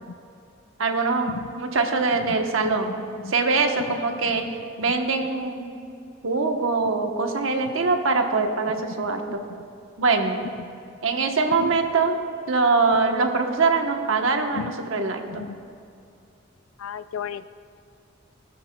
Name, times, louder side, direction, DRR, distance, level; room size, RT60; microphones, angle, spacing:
voice 1, 0.8-3.0 3.3-4.4 4.8-5.7 6.2-9.4 10.0-10.4 11.0-12.2 12.5-15.5, right 4 dB, 80° right, 4 dB, 1.0 m, -23 dB
voice 2, 11.6-11.9 14.5-14.7 15.3-15.6 16.8-17.5, left 7 dB, 85° left, 13 dB, 0.4 m, -34 dB
18.5 x 12.0 x 2.2 m, 2.5 s
head